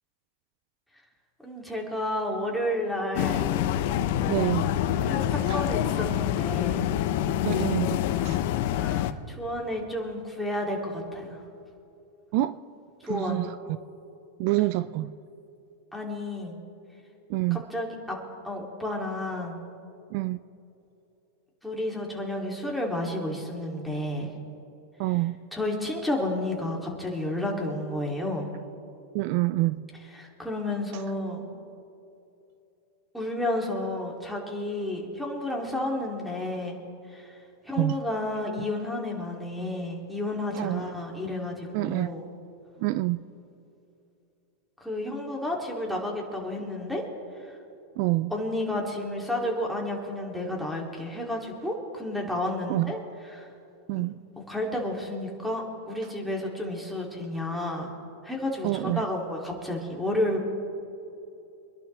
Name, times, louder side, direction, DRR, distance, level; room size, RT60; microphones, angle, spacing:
voice 1, 1.4-3.5 5.0-6.9 8.7-11.4 13.0-13.5 15.9-16.6 17.5-18.2 18.4-19.6 21.6-24.3 25.5-28.5 30.1-31.5 33.1-36.8 37.1-37.3 37.6-42.3 44.8-47.1 47.5-47.6 48.3-53.0 53.2-53.5 53.9-54.0 54.4-57.9 58.2-60.4, left 1 dB, ahead, -1 dB, 3.0 m, -31 dB
sound 1, 3.2-9.1, left 11 dB, 60° left, 0.8 m, -26 dB
voice 2, 4.3-4.7 5.5-5.6 7.4-8.4 12.3-12.6 13.0-13.8 14.4-15.1 17.3-17.6 20.1-20.4 25.0-25.4 29.1-29.8 37.8-38.0 40.5-40.8 41.7-42.1 42.8-43.2 48.0-48.3 52.7-52.9 53.9-54.1 58.6-59.1, right 18 dB, 55° right, 15 dB, 0.4 m, -27 dB
25.5 x 11.5 x 3.4 m, 2.8 s
hypercardioid pair, 120°, 0 cm